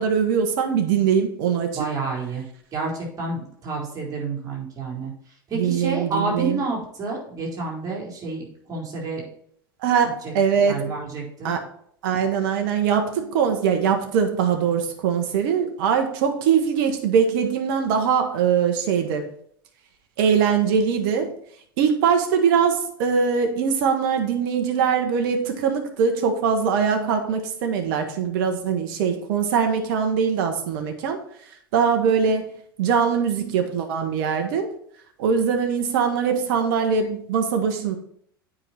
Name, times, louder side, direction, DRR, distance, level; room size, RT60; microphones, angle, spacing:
voice 1, 0.0-1.8 5.5-6.6 9.8-10.9 11.4-11.6 12.0-19.3 20.2-21.3 21.8-31.2 31.7-32.5 32.8-34.7 35.2-38.0, right 6 dB, 55° right, 5 dB, 1.2 m, -22 dB
voice 2, 1.8-2.4 2.7-5.1 5.5-9.3 10.2-11.5, right 3 dB, 30° right, -3 dB, 4.0 m, -29 dB
8.9 x 5.5 x 4.4 m, 0.64 s
figure-of-eight pair, 80°, 12 cm